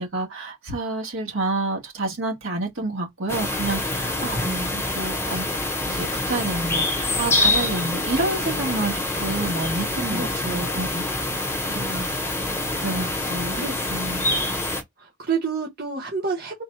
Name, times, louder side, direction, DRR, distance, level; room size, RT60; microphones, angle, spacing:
voice 1, 0.0-4.4 4.7-5.5 5.8-11.4 12.8-13.6 13.9-14.3, right 2 dB, 70° right, 1.5 m, -29 dB
sound 1, 3.3-14.8, left 2 dB, 10° left, 0.8 m, -26 dB
voice 2, 4.2-4.7 10.1-10.9 11.7-12.1 12.9-13.8 15.0-16.6, right 4 dB, 45° right, 1.1 m, -30 dB
3.7 x 2.2 x 4.4 m
head